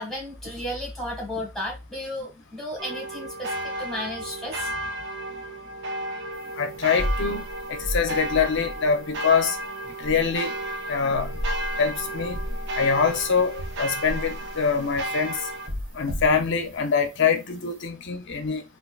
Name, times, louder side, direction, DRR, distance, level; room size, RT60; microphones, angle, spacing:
voice 1, 0.0-3.5 3.8-4.7, left 1 dB, ahead, 1.7 m, -33 dB
sound 1, 2.8-15.7, right 1 dB, 55° right, 0.5 m, -33 dB
sound 2, 6.3-17.0, equal, 70° right, 1.0 m, -34 dB
voice 2, 6.6-7.4 7.7-9.6 10.0-10.5 10.9-11.4 11.8-12.4 12.8-15.4 15.9-18.6, left 5 dB, 60° left, 0.7 m, -24 dB
3.9 x 2.6 x 2.3 m
head